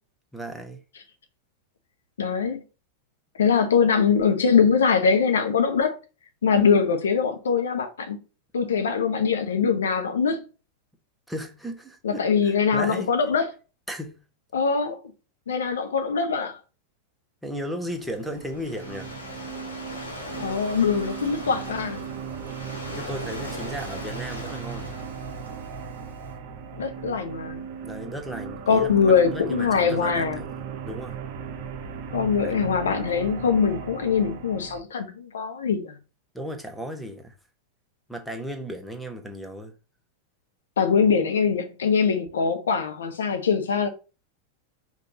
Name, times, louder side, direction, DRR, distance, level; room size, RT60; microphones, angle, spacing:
voice 1, 0.3-0.8 11.3-13.1 13.9-14.2 17.4-19.1 22.9-24.9 27.8-28.9 29.3-30.5 30.8-31.2 32.4-32.5 36.3-37.3 38.1-39.7, equal, ahead, 1.0 m, -35 dB
voice 2, 2.2-2.6 3.4-6.0 6.4-8.2 8.5-10.4 12.0-13.5 14.5-15.0 15.5-16.6 20.4-22.0 26.8-27.6 28.7-30.4 32.1-35.9 40.8-43.9, left 6 dB, 65° left, 0.8 m, -22 dB
sound 1, 17.8-34.8, right 6 dB, 45° right, 0.8 m, -37 dB
Waves surf, 18.0-26.2, left 2 dB, 80° left, 1.5 m, -40 dB
5.1 x 3.3 x 2.8 m
figure-of-eight pair, 90°, 0 cm